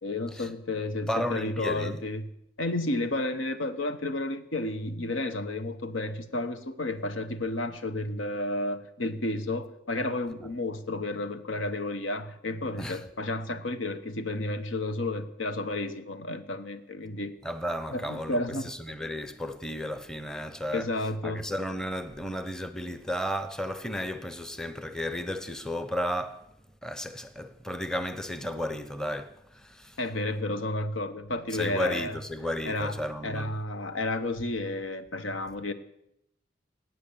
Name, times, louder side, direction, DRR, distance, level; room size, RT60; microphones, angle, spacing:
voice 1, 0.0-2.2 2.6-17.3 17.9-18.9 20.7-21.4 30.0-32.2 32.6-35.7, left 2 dB, 90° left, 1.2 m, -32 dB
voice 2, 1.1-2.0 12.8-13.0 17.4-18.4 18.6-20.9 21.2-26.4 26.8-30.0 31.5-33.6, equal, 5° left, 0.7 m, -33 dB
18.0 x 9.3 x 8.6 m
head